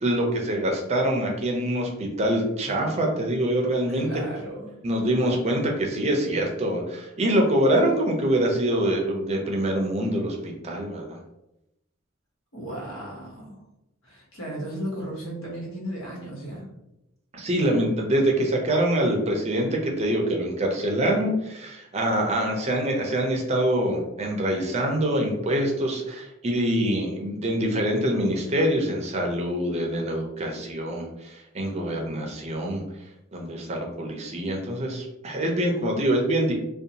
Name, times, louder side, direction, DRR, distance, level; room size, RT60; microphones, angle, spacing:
voice 1, 0.0-4.1 4.8-11.2 17.3-32.8 33.3-36.5, right 1 dB, 35° right, 0 dB, 0.5 m, -25 dB
voice 2, 3.9-4.7 12.5-13.6 14.0-16.7, right 1 dB, 85° left, -3 dB, 1.0 m, -35 dB
2.6 x 2.2 x 2.7 m, 0.88 s
head